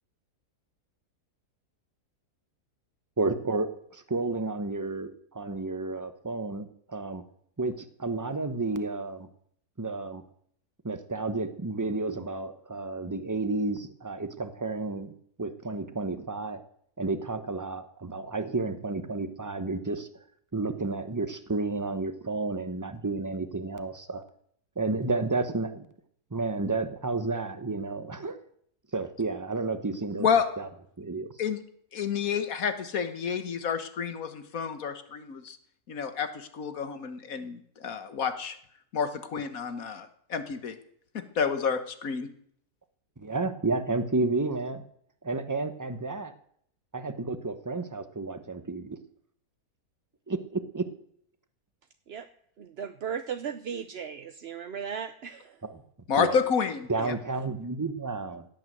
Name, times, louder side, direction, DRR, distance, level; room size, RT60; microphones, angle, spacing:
voice 1, 3.2-7.2 7.6-9.3 9.8-10.2 10.8-15.1 15.4-16.6 17.0-20.1 20.5-24.2 24.8-25.8 26.3-28.4 28.9-30.3 30.6-30.7 31.0-31.3 43.2-44.8 45.2-46.3 46.9-49.0 50.3-50.9 55.6-55.7 56.2-56.4 56.9-58.5, right 3 dB, 15° right, 10 dB, 0.9 m, -31 dB
voice 2, 31.9-35.6 35.9-38.6 38.9-40.8 41.1-42.3 56.1-57.1, left 6 dB, 60° left, 10 dB, 1.7 m, -29 dB
voice 3, 52.6-55.6, right 7 dB, 50° right, 8 dB, 0.8 m, -36 dB
16.5 x 9.1 x 7.9 m, 0.66 s
omnidirectional pair, 1.7 m